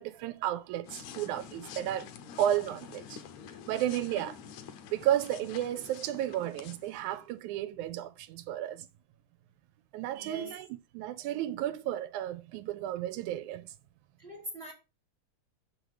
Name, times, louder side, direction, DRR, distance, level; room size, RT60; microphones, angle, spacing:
voice 1, 0.0-2.1 2.4-3.2 3.7-4.4 4.9-8.9 9.9-10.7 10.9-13.7, right 12 dB, 90° right, 2.0 m, -33 dB
sound 1, 0.8-7.3, left 8 dB, 75° left, 2.0 m, -47 dB
voice 2, 10.1-10.6 14.2-14.7, right 1 dB, 55° right, 0.6 m, -42 dB
6.5 x 6.0 x 4.8 m
omnidirectional pair, 3.4 m